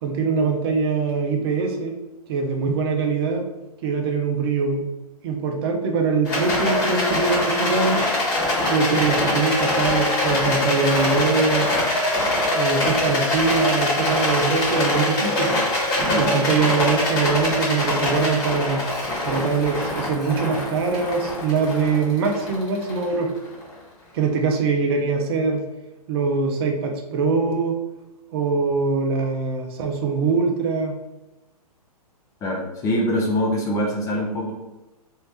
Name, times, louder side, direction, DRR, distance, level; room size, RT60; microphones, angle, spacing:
voice 1, 0.0-1.9 2.3-3.4 3.8-4.9 5.2-8.0 8.7-11.7 12.5-15.5 16.2-18.8 19.2-23.3 24.1-25.6 26.1-27.8 28.3-31.0, right 4 dB, 40° right, 2 dB, 0.7 m, -23 dB
Rattle, 6.2-23.6, left 1 dB, 35° left, 1.5 m, -23 dB
voice 2, 32.4-34.5, equal, 15° left, 1 dB, 0.6 m, -24 dB
3.2 x 2.7 x 4.4 m, 1.0 s
figure-of-eight pair, 120°, 20 cm